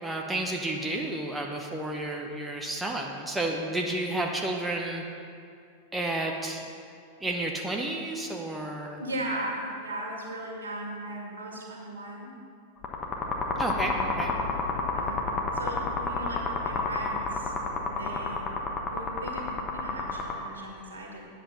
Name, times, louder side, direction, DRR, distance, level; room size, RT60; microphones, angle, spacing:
voice 1, 0.0-5.0 5.9-6.6 7.2-9.0 13.6-14.3, right 2 dB, 10° right, 1 dB, 0.9 m, -31 dB
voice 2, 9.0-12.3 13.8-14.5 14.9-17.5 17.9-18.4 18.9-21.2, right 1 dB, 70° right, -1 dB, 2.0 m, -37 dB
sound 1, 12.8-20.3, left 4 dB, 25° left, 1.3 m, -30 dB
10.0 x 8.0 x 5.6 m, 2.4 s
figure-of-eight pair, 90°, 0 cm